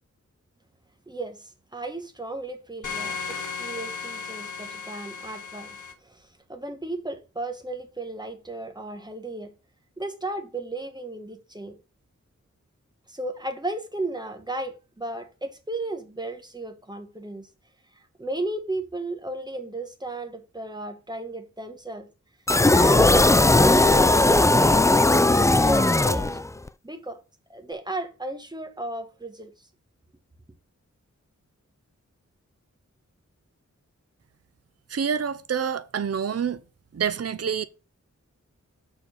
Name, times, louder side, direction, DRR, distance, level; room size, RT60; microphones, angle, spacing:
voice 1, 1.1-9.5 10.0-11.7 13.1-17.5 17.9-22.1 22.7-24.3 24.6-26.4 26.8-27.2 27.5-29.5, right 2 dB, 15° right, 1.4 m, -34 dB
sound 1, 2.8-5.9, left 6 dB, 85° left, 1.5 m, -35 dB
sound 2, 22.5-26.7, left 2 dB, 10° left, 0.3 m, -18 dB
voice 2, 34.9-36.6 36.9-37.6, right 7 dB, 55° right, 0.6 m, -27 dB
6.9 x 4.1 x 6.5 m
wide cardioid pair, 90°, 30 cm